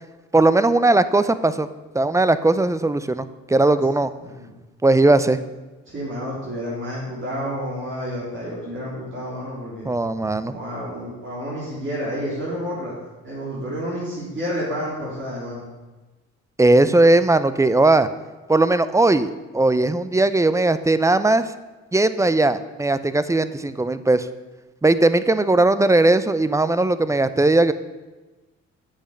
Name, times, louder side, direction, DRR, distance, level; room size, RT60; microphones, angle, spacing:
voice 1, 0.3-1.7 1.9-4.1 4.8-5.4 9.8-10.5 16.6-18.1 18.5-21.4 21.9-24.3 24.8-27.7, right 2 dB, 10° right, 13 dB, 0.5 m, -18 dB
voice 2, 4.2-4.5 5.9-9.9 10.4-12.9 13.2-15.6, equal, 40° right, -7 dB, 3.3 m, -30 dB
8.1 x 6.8 x 6.4 m, 1.2 s
cardioid pair, 90°, 30 cm